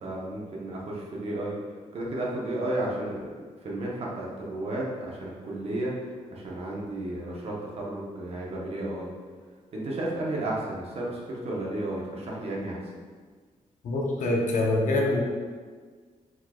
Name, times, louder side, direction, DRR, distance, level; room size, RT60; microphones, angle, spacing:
voice 1, 0.0-1.6 1.9-3.3 3.6-9.1 9.7-12.8, right 1 dB, 50° right, -4 dB, 0.9 m, -33 dB
voice 2, 13.8-15.2, left 2 dB, 75° left, -1 dB, 0.8 m, -25 dB
4.5 x 4.3 x 2.4 m, 1.6 s
wide cardioid pair, 165°, 13 cm